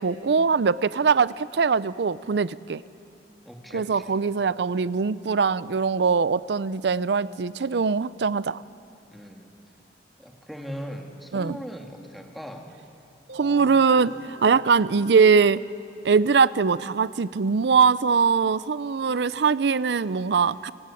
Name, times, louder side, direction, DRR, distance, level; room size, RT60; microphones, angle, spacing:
voice 1, 0.0-2.8 3.7-8.6 11.3-11.6 13.3-15.6 16.0-20.7, right 5 dB, 70° right, 18 dB, 0.5 m, -22 dB
voice 2, 3.4-4.2 9.1-9.5 10.2-12.7, equal, ahead, 2 dB, 1.8 m, -39 dB
sound 1, 13.3-16.0, right 2 dB, 90° right, 2.5 m, -43 dB
24.0 x 18.5 x 8.5 m, 2.7 s
head